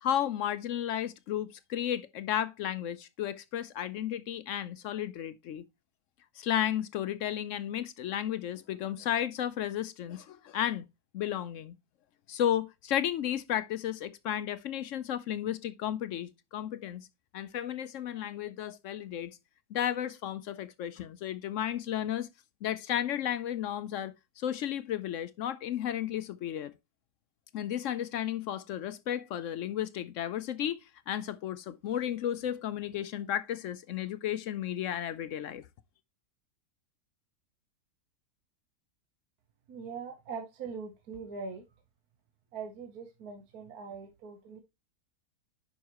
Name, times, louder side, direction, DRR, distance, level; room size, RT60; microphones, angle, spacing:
voice 1, 0.0-5.6 6.4-10.8 11.1-11.8 12.3-17.1 17.3-19.4 19.7-22.3 22.6-26.7 27.5-30.8 31.1-35.6, left 10 dB, 70° left, 0.7 m, -33 dB
voice 2, 39.7-41.6 42.5-44.6, right 5 dB, 70° right, 1.4 m, -42 dB
9.3 x 5.5 x 3.0 m
omnidirectional pair, 1.7 m